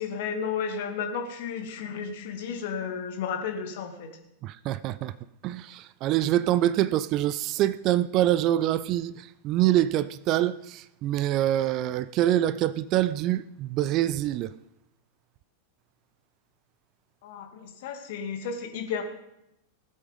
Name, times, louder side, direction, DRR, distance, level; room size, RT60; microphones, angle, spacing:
voice 1, 0.0-4.2 17.2-19.0, left 6 dB, 50° left, 2.2 m, -33 dB
voice 2, 4.4-5.1 5.4-14.5, right 13 dB, 40° right, 0.5 m, -25 dB
19.0 x 7.9 x 5.3 m
figure-of-eight pair, 90°, 0 cm